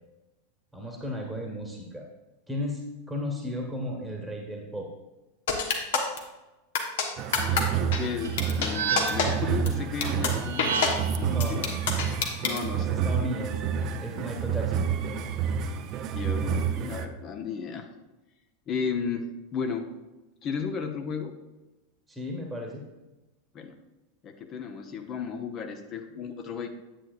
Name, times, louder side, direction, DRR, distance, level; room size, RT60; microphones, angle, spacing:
voice 1, 0.7-2.0 2.5-4.9 11.2-11.8 12.9-13.7 14.0-14.9 22.1-22.8, left 1 dB, ahead, 0 dB, 1.4 m, -34 dB
sound 1, 5.5-6.2 6.7-7.0 7.3-7.6 7.9-8.0 8.4-8.7 9.0-9.3 9.7-9.8 10.0-10.3 10.6-10.9 11.4-12.6, left 6 dB, 60° left, 1.2 m, -25 dB
sound 2, 7.2-17.1, right 7 dB, 40° right, 0.5 m, -29 dB
voice 2, 7.4-11.6 12.4-13.1 16.1-17.9 18.7-19.2 19.5-19.9 20.4-21.3 23.5-23.8 24.2-26.7, left 6 dB, 35° left, 5 dB, 0.8 m, -34 dB
sound 3, 8.2-9.4 10.4-11.2, right 6 dB, 70° right, 1.5 m, -31 dB
10.0 x 8.3 x 2.5 m, 1.1 s
figure-of-eight pair, 85°, 0 cm